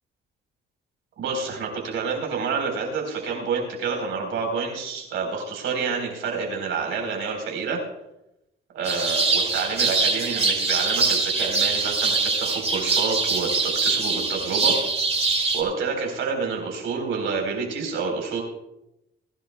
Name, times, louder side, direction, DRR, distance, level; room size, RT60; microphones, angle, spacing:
voice 1, 1.2-7.8 8.7-14.8 15.5-18.4, right 5 dB, 80° right, 1 dB, 4.2 m, -28 dB
sound 1, 8.8-15.6, right 4 dB, 30° right, 2.9 m, -23 dB
23.5 x 11.5 x 2.3 m, 0.88 s
cardioid pair, 90°, 20 cm